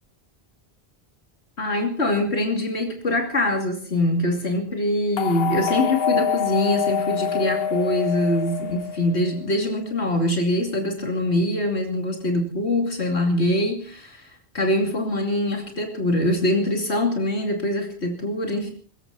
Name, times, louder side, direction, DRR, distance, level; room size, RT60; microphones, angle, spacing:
voice 1, 1.6-14.3 14.5-18.7, left 1 dB, 85° left, 3 dB, 3.1 m, -23 dB
sound 1, 5.2-9.4, left 8 dB, 65° left, 1.2 m, -26 dB
24.0 x 14.5 x 4.2 m, 0.40 s
omnidirectional pair, 1.1 m